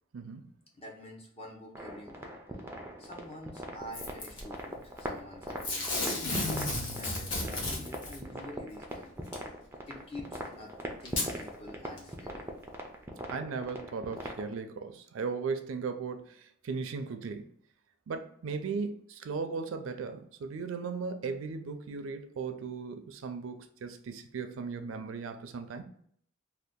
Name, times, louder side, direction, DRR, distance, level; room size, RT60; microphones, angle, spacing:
voice 1, 0.1-0.5 13.3-17.5 18.1-25.8, right 5 dB, 75° right, 8 dB, 0.4 m, -37 dB
voice 2, 0.7-2.3 3.0-6.6 6.9-9.3 9.9-10.7 11.0-12.5, left 1 dB, 30° left, 0 dB, 0.7 m, -47 dB
sound 1, 1.7-14.5, right 1 dB, 10° right, 0.4 m, -40 dB
Packing tape duct tape / Tearing, 3.9-4.4 5.6-8.2 9.3-9.4 10.3-10.4 11.0-11.3 12.0-12.1, left 2 dB, 60° left, 0.9 m, -33 dB
2.7 x 2.3 x 3.5 m, 0.63 s
head